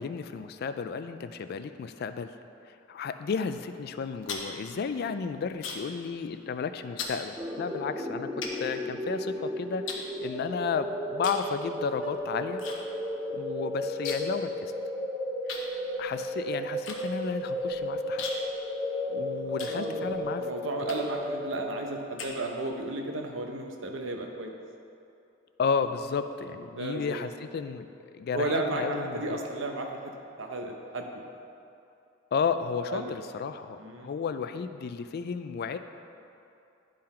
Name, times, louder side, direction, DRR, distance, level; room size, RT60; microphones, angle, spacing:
voice 1, 0.0-2.3 2.7-12.6 13.3-14.7 15.5-15.7 16.0-18.2 19.1-20.4 25.6-27.9 28.1-29.4 32.3-35.8, left 5 dB, 55° left, 10 dB, 0.3 m, -33 dB
sound 1, 3.9-6.0 6.3-6.6 7.0-7.2 7.8-7.9 8.4-9.4 9.9-10.7 11.2-11.5 11.8-12.8 13.0-13.1 13.4-14.4 14.7-14.8 15.5-20.3 20.8-21.3 21.7-22.8, left 5 dB, 70° left, 0.9 m, -40 dB
sound 2, 7.4-22.1, equal, 10° right, 0.5 m, -34 dB
voice 2, 19.5-24.5 26.8-27.3 28.3-31.2 32.9-33.1 33.8-34.1, right 2 dB, 70° right, 2 dB, 0.8 m, -34 dB
10.0 x 3.9 x 4.3 m, 2.7 s
head